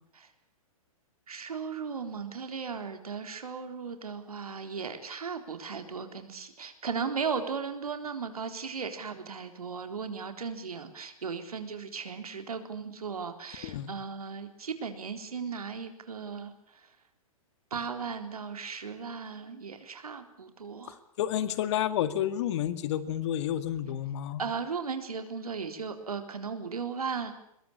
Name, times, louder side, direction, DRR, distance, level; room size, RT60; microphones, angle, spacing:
voice 1, 1.3-16.5 17.7-21.0 24.4-27.3, right 5 dB, 80° right, 7 dB, 3.9 m, -36 dB
voice 2, 21.2-24.4, left 11 dB, 50° left, 13 dB, 2.2 m, -30 dB
22.5 x 22.0 x 8.7 m, 0.72 s
hypercardioid pair, 120°, 19 cm